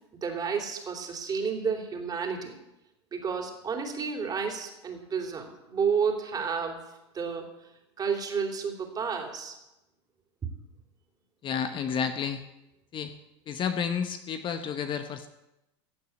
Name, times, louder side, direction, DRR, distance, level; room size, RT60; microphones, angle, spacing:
voice 1, 0.2-2.6 3.1-6.8 7.1-7.5 8.0-9.6 10.4-10.5, right 6 dB, 25° right, 3 dB, 3.2 m, -31 dB
voice 2, 11.4-12.4 12.9-13.1 13.5-15.3, left 7 dB, 35° left, 8 dB, 1.0 m, -31 dB
15.5 x 6.8 x 9.3 m, 0.94 s
hypercardioid pair, 110°, 15 cm